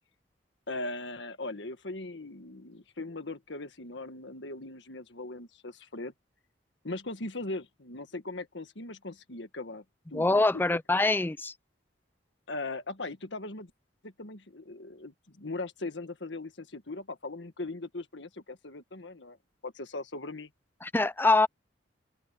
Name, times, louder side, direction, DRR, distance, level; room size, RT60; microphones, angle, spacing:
voice 1, 0.7-6.1 6.8-9.8 10.1-10.3 12.5-13.7 14.0-19.4 19.6-20.5, left 2 dB, 70° left, 1.7 m, -39 dB
voice 2, 10.1-11.5 20.8-21.5, left 2 dB, 10° left, 0.4 m, -24 dB
head